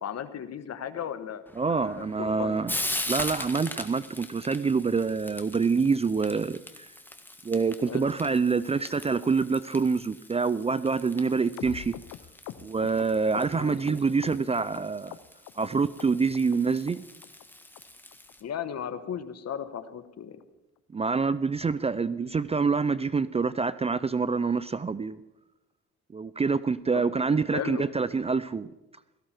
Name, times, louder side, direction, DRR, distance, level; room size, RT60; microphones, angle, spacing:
voice 1, 0.0-1.4 1.7-2.6 7.9-8.1 13.5-13.8 18.4-20.4 26.9-27.0 27.5-27.8, left 9 dB, 55° left, 11 dB, 1.3 m, -36 dB
Frying (food), 1.5-18.4, left 1 dB, 5° left, 1.5 m, -41 dB
voice 2, 1.6-2.7 3.1-6.9 7.4-11.9 12.6-15.2 15.6-17.0 20.9-25.2 26.1-28.7, right 4 dB, 20° right, 16 dB, 0.4 m, -26 dB
sound 1, 11.6-14.8 15.1-15.7 16.0-16.6 16.9-17.0 17.2-17.5 17.8-17.9 18.1-18.3 18.6-18.7 19.0-19.2 19.5-19.6 19.9-20.1 20.4-20.5 20.8-21.0 21.3-21.4, left 13 dB, 80° left, 0.8 m, -44 dB
17.5 x 14.5 x 4.5 m, 0.98 s
cardioid pair, 90°, 30 cm